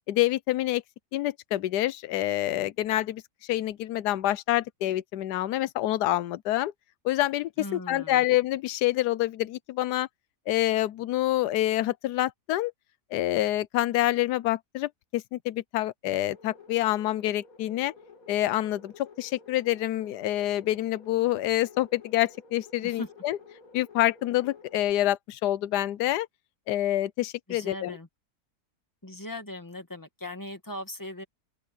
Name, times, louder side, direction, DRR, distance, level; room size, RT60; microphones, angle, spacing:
voice 1, 0.1-0.8 1.1-6.7 7.0-10.1 10.5-12.7 13.1-17.9 18.3-23.4 23.7-26.3 26.7-27.9, left 14 dB, 85° left, 1.2 m, -27 dB
voice 2, 7.6-8.2 22.8-23.1 27.5-28.1 29.0-31.2, left 1 dB, 10° left, 2.1 m, -39 dB
sound 1, 16.1-24.9, left 4 dB, 60° left, 2.4 m, -52 dB
open air
omnidirectional pair, 1.7 m